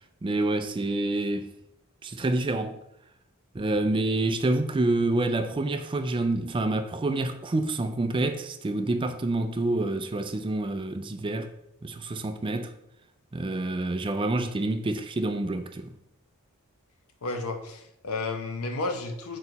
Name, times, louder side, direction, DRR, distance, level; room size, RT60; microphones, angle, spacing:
voice 1, 0.2-1.5 2.0-2.8 3.5-11.5 11.8-12.7 13.3-15.9, right 2 dB, 25° right, 0.4 m, -27 dB
voice 2, 17.2-19.4, left 3 dB, 75° left, 0.8 m, -32 dB
4.6 x 4.0 x 5.2 m
head